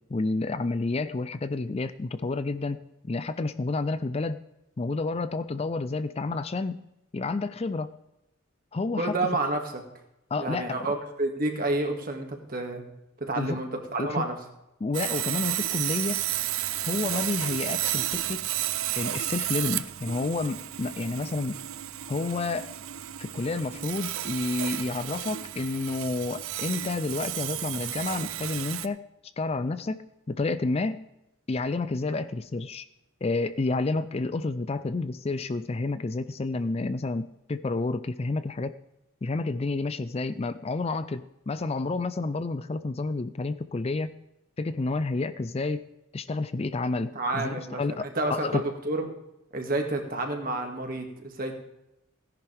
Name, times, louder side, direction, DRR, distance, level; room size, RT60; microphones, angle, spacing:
voice 1, 0.1-4.4 4.8-6.8 7.1-7.9 8.7-9.2 10.3-10.9 13.4-13.6 14.0-14.3 14.8-16.2 16.8-18.4 19.0-21.6 22.1-22.7 23.2-29.0 29.4-31.1 31.5-32.8 33.2-38.8 39.2-44.1 44.6-45.9 46.1-48.7, left 3 dB, 30° left, 12 dB, 0.4 m, -30 dB
voice 2, 9.0-9.6 10.4-12.8 13.2-14.4 47.1-49.1 49.5-51.6, right 2 dB, 45° right, 3 dB, 2.1 m, -29 dB
Sawing, 14.9-28.9, right 13 dB, 80° right, 0.5 m, -32 dB
17.0 x 10.5 x 3.4 m, 0.88 s
head